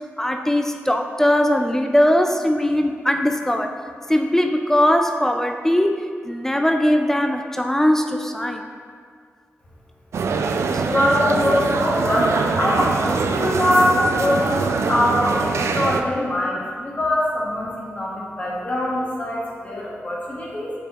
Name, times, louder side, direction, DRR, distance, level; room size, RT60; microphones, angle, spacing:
voice 1, 0.2-3.7 4.1-8.6 10.7-10.8, left 1 dB, 10° left, 5 dB, 0.3 m, -20 dB
sound 1, 10.1-16.0, right 4 dB, 90° right, 0.3 m, -23 dB
voice 2, 10.9-20.7, left 1 dB, 35° left, -5 dB, 1.5 m, -22 dB
7.0 x 5.7 x 2.9 m, 2.1 s
wide cardioid pair, 90°, 5 cm